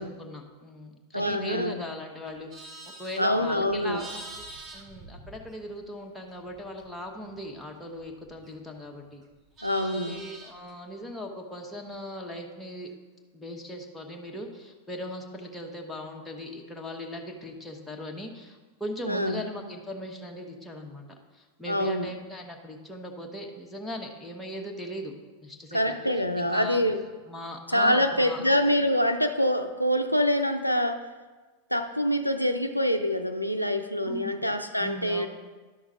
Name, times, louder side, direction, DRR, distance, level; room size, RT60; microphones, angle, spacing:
voice 1, 0.0-2.7 3.0-4.4 4.7-9.2 9.9-12.9 13.3-21.0 21.3-25.1 25.4-26.0 26.4-26.8 27.3-28.4 34.1-34.4 34.8-35.3, left 1 dB, 5° left, 0 dB, 1.2 m, -39 dB
voice 2, 1.1-1.8 3.2-4.0 9.6-10.2 19.1-19.4 21.7-22.1 25.7-27.0 27.7-31.0 31.7-35.3, equal, 90° left, 6 dB, 0.4 m, -25 dB
Livestock farm animals working animals, 2.3-6.0 6.3-8.8 9.1-10.7, right 2 dB, 25° right, 1.1 m, -46 dB
11.5 x 6.2 x 3.7 m, 1.3 s
figure-of-eight pair, 90°, 0 cm